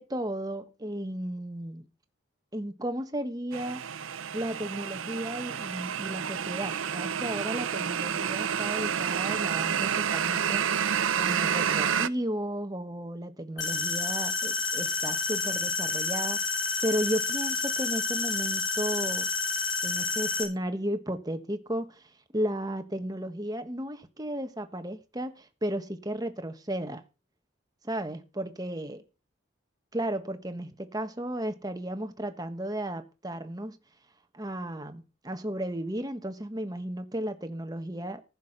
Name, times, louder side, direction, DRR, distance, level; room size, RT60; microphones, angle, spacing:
voice 1, 0.0-1.8 2.5-3.8 4.3-10.6 11.2-19.3 19.8-27.0 27.8-29.0 29.9-33.8 34.3-38.2, right 1 dB, 20° right, 1.4 m, -34 dB
sound 1, 3.5-12.1, right 8 dB, 75° right, 0.7 m, -29 dB
sound 2, 13.6-20.4, left 4 dB, 70° left, 5.1 m, -29 dB
15.0 x 7.2 x 5.9 m
head